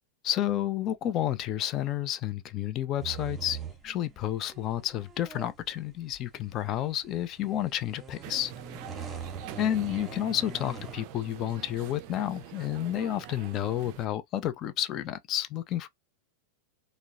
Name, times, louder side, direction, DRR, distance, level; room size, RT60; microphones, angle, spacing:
voice 1, 0.2-3.6 3.8-8.8 9.6-15.9, left 12 dB, 35° left, 0.4 m, -31 dB
sound 1, 3.0-11.0, right 5 dB, 15° right, 0.7 m, -43 dB
sound 2, 8.2-14.1, right 13 dB, 45° right, 0.3 m, -45 dB
3.7 x 2.1 x 2.4 m
figure-of-eight pair, 90°, 0 cm